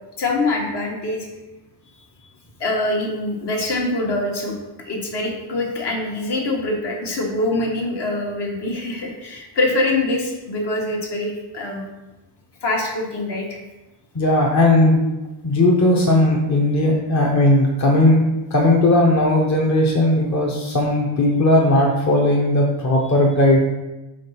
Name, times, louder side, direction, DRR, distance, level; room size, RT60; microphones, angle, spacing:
voice 1, 0.2-1.3 2.6-11.8 12.6-13.6, left 2 dB, 55° left, 0 dB, 1.6 m, -24 dB
voice 2, 14.1-15.0 15.4-18.2 18.5-23.6, left 1 dB, 35° left, -1 dB, 0.9 m, -17 dB
5.1 x 3.9 x 5.7 m, 1.1 s
cardioid pair, 115°, 47 cm